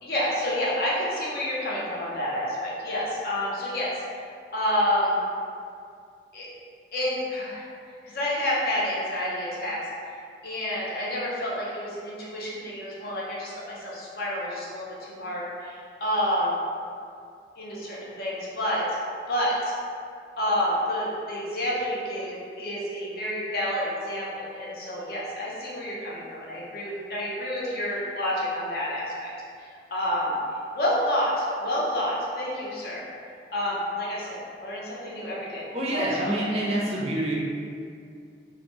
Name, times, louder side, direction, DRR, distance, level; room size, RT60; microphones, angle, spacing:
voice 1, 0.0-3.9 4.5-5.2 6.3-6.5 6.9-7.6 8.0-9.8 10.4-16.6 17.6-19.0 19.3-19.7 20.4-29.3 29.6-30.3 30.7-33.0 33.5-35.7 35.9-36.3, equal, 55° left, -6 dB, 0.6 m, -29 dB
voice 2, 35.7-37.3, right 1 dB, 35° right, -5 dB, 0.4 m, -27 dB
2.5 x 2.0 x 3.0 m, 2.3 s
head